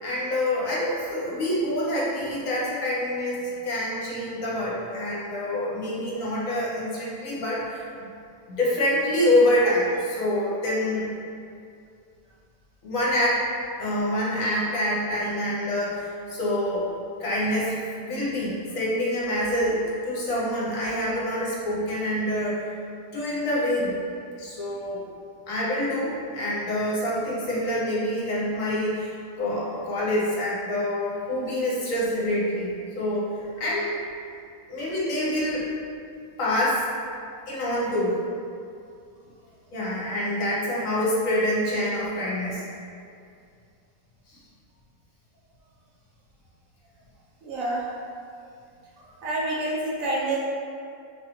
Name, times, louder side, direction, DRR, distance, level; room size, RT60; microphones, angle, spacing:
voice 1, 0.0-8.1 8.5-11.1 12.8-13.4 13.8-16.9 17.2-19.8 20.0-22.7 23.1-24.0 24.4-25.0 25.5-32.7 33.0-33.9 34.7-35.7 36.4-36.9 37.5-38.1 39.7-42.6 44.3-44.4, left 1 dB, 65° left, -6 dB, 1.0 m, -26 dB
voice 2, 47.4-47.8 49.2-50.4, right 2 dB, 70° right, -5 dB, 0.9 m, -27 dB
4.8 x 2.4 x 2.9 m, 2.4 s
omnidirectional pair, 1.7 m